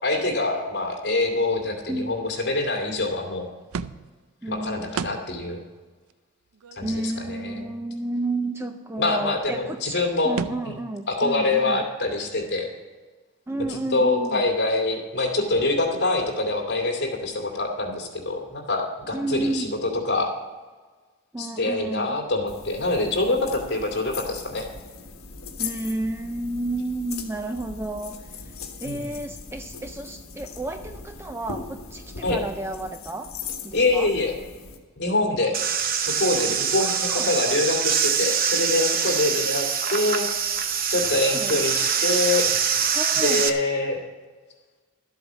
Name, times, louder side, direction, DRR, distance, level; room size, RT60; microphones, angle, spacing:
voice 1, 0.0-3.5 4.5-5.6 6.7-7.7 9.0-10.3 10.6-10.8 11.1-12.7 13.9-19.6 20.0-20.3 21.4-24.7 28.8-29.0 32.2-32.4 33.7-34.3 35.0-35.6 36.2-40.3 40.9-42.5 43.2-44.0, left 2 dB, 45° left, 1 dB, 2.4 m, -25 dB
sound 1, 3.7-4.3 4.9-5.4 5.8-5.9 6.1-6.2 6.5-7.6 9.5-9.6 9.7-9.8 10.4-10.8, right 5 dB, 75° right, 0.4 m, -33 dB
voice 2, 4.4-4.9 6.8-11.8 13.5-14.4 19.1-19.8 21.3-22.2 25.6-28.5 28.8-33.3 33.6-34.1 36.8-37.4 41.1-41.6 42.9-43.4, right 2 dB, 10° right, 7 dB, 0.4 m, -31 dB
sound 2, 22.5-34.8, left 5 dB, 70° left, 1.4 m, -39 dB
sound 3, 35.5-43.5, right 7 dB, 40° right, 0.7 m, -24 dB
12.5 x 8.1 x 6.2 m, 1.4 s
head